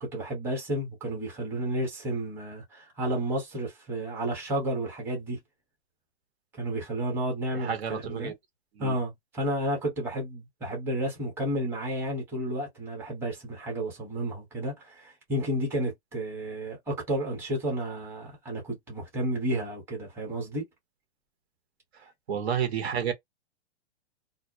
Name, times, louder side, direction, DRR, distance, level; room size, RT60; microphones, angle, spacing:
voice 1, 0.0-5.4 6.6-8.3 8.8-20.7, right 1 dB, 5° right, 0.9 m, -31 dB
voice 2, 7.5-8.3 8.8-8.9 22.3-23.1, right 8 dB, 65° right, 0.9 m, -30 dB
2.2 x 2.0 x 2.7 m
hypercardioid pair, 155°, 34 cm